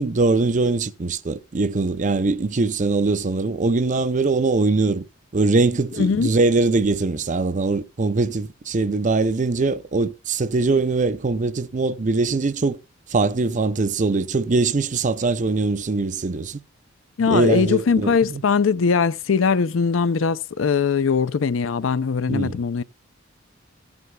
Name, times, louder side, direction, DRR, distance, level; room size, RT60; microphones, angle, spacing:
voice 1, 0.0-5.0 5.3-12.8 13.1-16.6 17.3-18.4 22.3-22.5, right 3 dB, 40° right, 0.6 m, -22 dB
voice 2, 6.0-6.3 17.2-22.8, left 5 dB, 75° left, 0.5 m, -21 dB
16.0 x 9.6 x 2.3 m
head